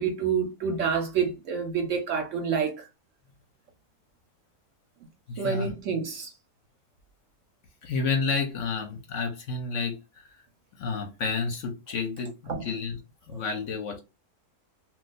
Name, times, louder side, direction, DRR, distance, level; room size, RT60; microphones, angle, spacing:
voice 1, 0.0-2.9 5.4-6.3 12.5-12.6, right 6 dB, 65° right, 0.8 m, -28 dB
voice 2, 5.3-5.7 7.8-10.3 10.8-13.0 13.3-14.0, left 4 dB, 65° left, 0.9 m, -30 dB
2.3 x 2.3 x 3.9 m
omnidirectional pair, 1.6 m